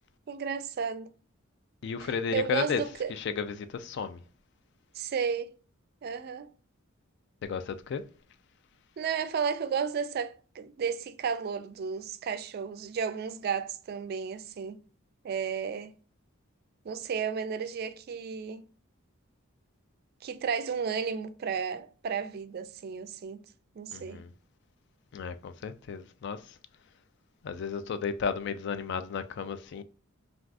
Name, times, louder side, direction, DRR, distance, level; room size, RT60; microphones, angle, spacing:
voice 1, 0.3-1.1 2.0-3.1 5.0-5.5 6.0-6.5 9.0-14.8 15.2-15.9 16.8-18.6 20.2-23.4 23.8-24.2, right 6 dB, 50° right, 0.3 m, -33 dB
voice 2, 1.8-2.8 3.1-4.2 7.4-8.0 23.9-24.3 25.1-26.6 27.4-29.8, left 6 dB, 55° left, 0.3 m, -33 dB
3.4 x 2.4 x 2.4 m
head